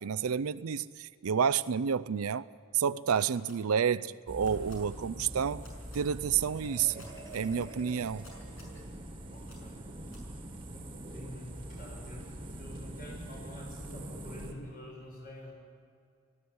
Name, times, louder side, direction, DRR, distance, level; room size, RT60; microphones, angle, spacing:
voice 1, 0.0-2.5 2.7-5.6 5.9-7.0 7.3-8.2, right 7 dB, 85° right, 15 dB, 0.5 m, -30 dB
sound 1, 3.2-3.5 4.4-4.8 5.6-6.0 7.0-7.4 8.2-8.8 9.5-9.6 10.1-10.2, left 2 dB, 70° left, 6.4 m, -54 dB
sound 2, 4.3-14.5, right 1 dB, 25° right, 1.8 m, -44 dB
Marimba xylophone, 6.5-9.2, right 1 dB, 15° left, 3.2 m, -51 dB
voice 2, 9.3-9.8 10.3-10.4 10.7-15.5, equal, 45° left, -2 dB, 7.0 m, -47 dB
18.5 x 15.5 x 9.5 m, 2.2 s
head